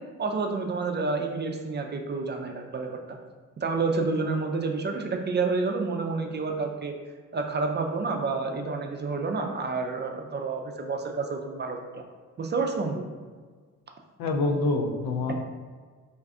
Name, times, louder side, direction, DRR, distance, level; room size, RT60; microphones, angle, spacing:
voice 1, 0.2-3.0 3.6-6.9 7.3-12.0 12.4-13.0, right 4 dB, 30° right, 3 dB, 0.4 m, -29 dB
voice 2, 14.2-15.3, left 2 dB, 70° left, 4 dB, 0.5 m, -26 dB
2.6 x 2.3 x 3.5 m, 1.5 s
supercardioid pair, 50°, 37 cm